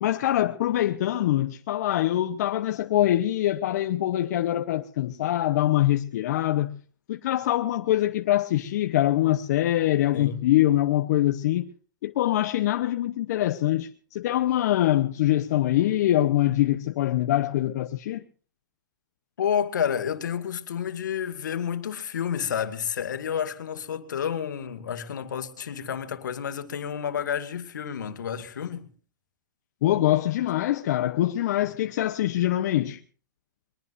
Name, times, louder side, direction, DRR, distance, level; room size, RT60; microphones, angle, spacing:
voice 1, 0.0-6.8 7.1-11.7 12.0-18.2 29.8-33.0, left 13 dB, 55° left, 1.0 m, -24 dB
voice 2, 19.4-28.9, left 8 dB, 75° left, 2.1 m, -30 dB
22.5 x 21.5 x 2.6 m
hypercardioid pair, 130°, 10 cm